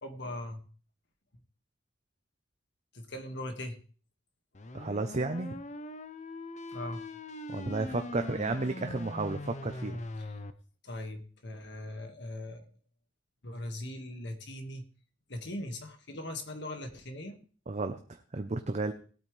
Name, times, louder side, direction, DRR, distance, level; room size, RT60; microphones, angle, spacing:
voice 1, 0.0-0.6 2.9-3.8 6.7-7.0 10.2-10.3 10.8-12.7 13.4-14.8 15.3-17.4, left 1 dB, 65° left, 6 dB, 1.8 m, -40 dB
sound 1, 4.5-10.5, left 2 dB, 40° left, 0.8 m, -42 dB
voice 2, 4.7-5.6 7.5-10.0 17.7-18.9, right 3 dB, 40° right, 7 dB, 0.7 m, -33 dB
19.0 x 8.8 x 3.3 m, 0.40 s
head